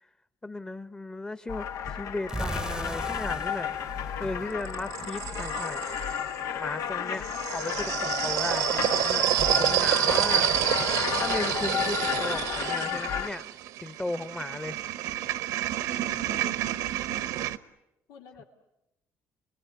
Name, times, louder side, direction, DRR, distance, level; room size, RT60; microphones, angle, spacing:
voice 1, 0.4-3.8 4.2-5.8 6.5-7.2 7.5-10.5 11.2-14.8 18.4-18.5, left 2 dB, 15° left, 13 dB, 1.1 m, -36 dB
sound 1, 1.5-13.3, left 9 dB, 65° left, 1.0 m, -32 dB
sound 2, 2.3-5.1, right 2 dB, 10° right, 0.9 m, -38 dB
sound 3, 3.9-6.3 7.1-17.6, right 13 dB, 85° right, 1.1 m, -29 dB
voice 2, 7.0-7.7 16.0-16.6 18.1-18.4, left 6 dB, 90° left, 2 dB, 2.4 m, -47 dB
29.0 x 21.5 x 9.6 m, 0.90 s
cardioid pair, 115°, 6 cm